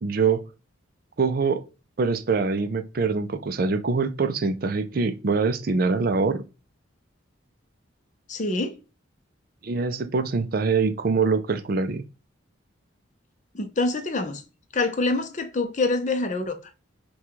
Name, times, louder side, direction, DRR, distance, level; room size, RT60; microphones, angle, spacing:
voice 1, 0.0-0.5 1.2-1.6 2.0-6.4 9.6-12.0, right 4 dB, 45° right, 0.4 m, -24 dB
voice 2, 8.3-8.8 13.5-14.4 14.7-16.6, left 3 dB, 35° left, 0.6 m, -25 dB
5.8 x 2.3 x 3.0 m
head